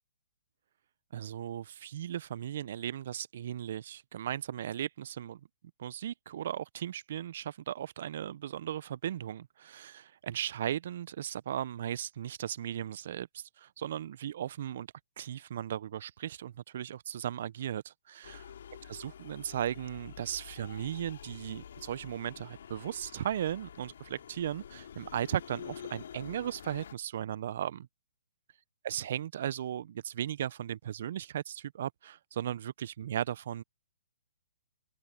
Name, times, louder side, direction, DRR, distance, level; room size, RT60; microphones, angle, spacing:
voice 1, 1.1-5.4 5.8-14.9 15.2-18.4 18.9-27.9 28.8-33.6, right 10 dB, 55° right, 0.8 m, -36 dB
sound 1, 18.2-26.9, left 8 dB, 60° left, 3.8 m, -48 dB
open air
hypercardioid pair, 135°, 0 cm